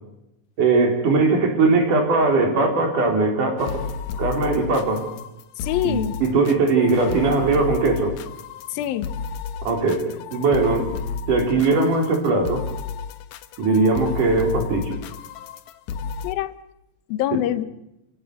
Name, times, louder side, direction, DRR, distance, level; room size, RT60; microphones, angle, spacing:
voice 1, 0.6-3.8 4.2-5.1 5.8-8.2 9.7-10.1 10.3-10.9 11.3-12.6 13.6-15.0, right 3 dB, 60° right, 4 dB, 5.2 m, -20 dB
sound 1, 3.6-16.3, left 6 dB, 70° left, 1.9 m, -32 dB
voice 2, 5.6-6.2 8.7-9.2 16.2-16.6 17.1-17.7, left 13 dB, 85° left, 14 dB, 2.8 m, -25 dB
27.5 x 16.5 x 7.8 m, 0.88 s
omnidirectional pair, 4.1 m